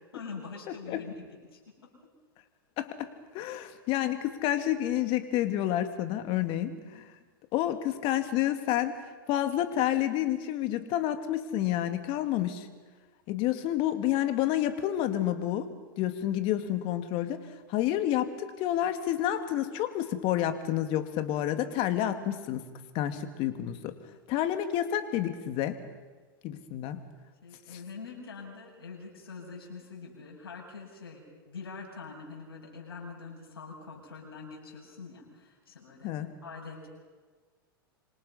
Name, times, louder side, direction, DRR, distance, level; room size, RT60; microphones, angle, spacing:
voice 1, 0.1-1.9 27.4-36.1 36.4-36.9, left 4 dB, 80° left, -2 dB, 7.4 m, -44 dB
voice 2, 2.8-3.1 3.3-7.0 7.5-8.9 9.3-12.7 13.3-15.7 16.0-17.4 17.7-22.6 22.9-23.9 24.3-25.8 26.4-27.0 27.7-27.8 36.0-36.3, left 12 dB, 45° left, 8 dB, 2.4 m, -29 dB
26.0 x 26.0 x 5.6 m, 1.4 s
hypercardioid pair, 100°, 12 cm